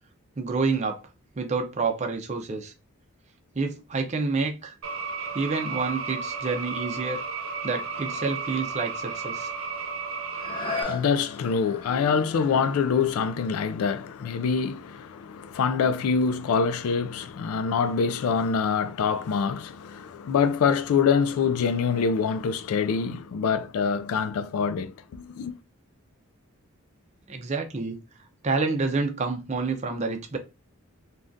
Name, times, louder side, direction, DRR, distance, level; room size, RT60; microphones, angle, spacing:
voice 1, 0.4-1.0 1.4-2.7 3.6-4.7 5.3-7.2 7.6-9.5 27.3-28.0 28.4-30.4, right 4 dB, 30° right, 0.5 m, -28 dB
sound 1, 4.8-10.8, right 4 dB, 70° right, 0.6 m, -33 dB
sound 2, 10.3-16.0 16.6-16.7, left 4 dB, 20° left, 0.6 m, -39 dB
voice 2, 10.4-25.6, left 6 dB, 85° left, 0.3 m, -25 dB
3.4 x 2.3 x 2.6 m
head